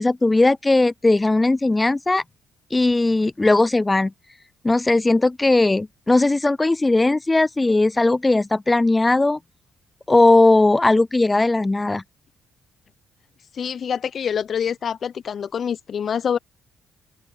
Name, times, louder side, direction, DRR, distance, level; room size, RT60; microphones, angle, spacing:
voice 1, 0.0-2.2 2.7-4.1 4.6-9.4 10.1-12.0, left 2 dB, 20° left, 0.4 m, -18 dB
voice 2, 13.5-16.4, left 7 dB, 55° left, 0.7 m, -26 dB
open air
hypercardioid pair, 50°, 0 cm